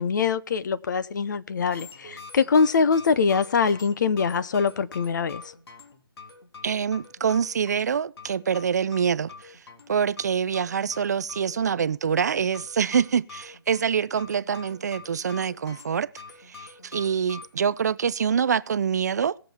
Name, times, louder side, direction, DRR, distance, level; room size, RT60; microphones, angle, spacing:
voice 1, 0.0-5.5, left 5 dB, 45° left, 0.8 m, -23 dB
sound 1, 1.7-17.5, left 4 dB, 75° left, 3.3 m, -46 dB
voice 2, 6.6-16.1 16.4-19.4, right 7 dB, 40° right, 0.4 m, -25 dB
18.5 x 7.4 x 4.3 m
hypercardioid pair, 160°, 13 cm